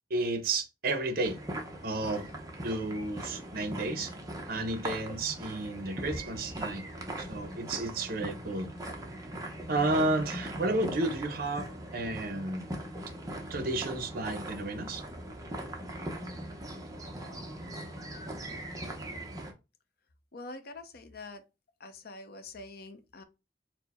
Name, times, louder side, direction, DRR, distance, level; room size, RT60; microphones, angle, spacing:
voice 1, 0.1-1.4 1.8-2.2 2.6-4.1 4.5-6.8 7.2-8.7 9.7-11.7 11.9-12.7 13.5-15.0, right 2 dB, 55° right, 0.7 m, -32 dB
sound 1, 1.3-19.5, right 1 dB, 20° right, 0.7 m, -40 dB
voice 2, 20.3-21.4 21.8-23.2, left 2 dB, 60° left, 0.6 m, -45 dB
4.5 x 2.1 x 4.1 m
head